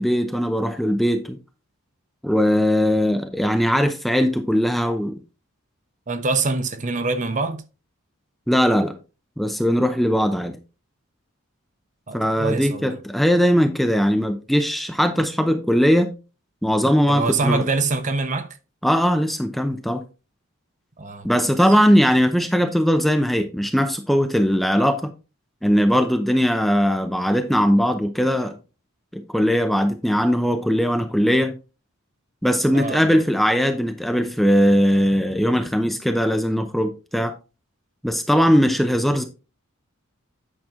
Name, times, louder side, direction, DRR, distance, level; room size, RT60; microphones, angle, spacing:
voice 1, 0.0-1.4 2.2-5.1 8.5-8.9 9.4-10.6 12.1-16.1 16.6-17.6 18.8-20.0 21.2-25.1 25.6-28.5 29.1-31.6 32.4-37.3 38.0-39.2, equal, ahead, 0.6 m, -20 dB
voice 2, 6.1-7.6 12.1-12.9 17.1-18.6 21.0-21.5 32.7-33.2, right 3 dB, 35° right, 0.9 m, -25 dB
8.9 x 5.9 x 3.7 m
head